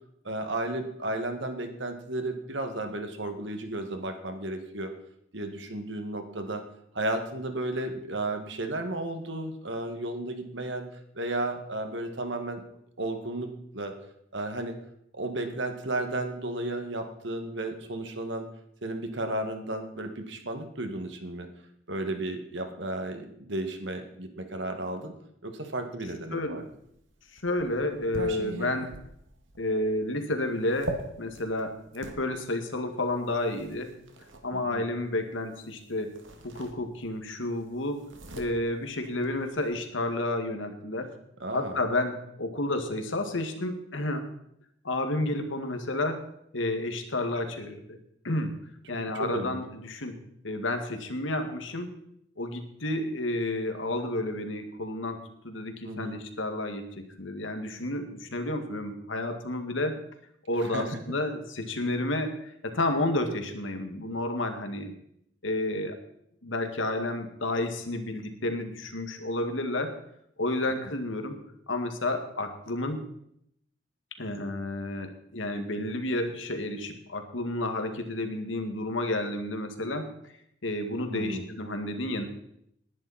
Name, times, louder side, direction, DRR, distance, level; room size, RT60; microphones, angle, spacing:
voice 1, 0.2-4.9 5.3-6.6 6.9-10.9 11.2-12.6 13.0-14.0 14.3-14.8 15.1-18.5 18.8-21.5 21.9-25.1 25.4-26.6 34.5-34.9 41.4-41.8 48.9-49.6 55.8-56.2 60.6-61.0 81.1-81.5, right 2 dB, 70° right, 6 dB, 1.9 m, -33 dB
sound 1, 26.9-32.2 33.1-34.4 35.7-35.8 36.1-37.2 37.5-39.7, right 2 dB, 85° right, 2.0 m, -40 dB
voice 2, 27.3-28.9 29.6-33.9 34.4-38.1 38.4-41.1 41.5-44.3 44.8-46.3 46.5-48.0 48.2-48.6 48.9-50.2 50.4-51.9 52.4-60.0 60.5-64.9 65.4-66.0 66.4-70.0 70.4-71.4 71.7-73.0 74.2-80.1 80.6-82.2, left 1 dB, 90° left, 6 dB, 2.0 m, -31 dB
20.0 x 10.5 x 4.3 m, 0.74 s
head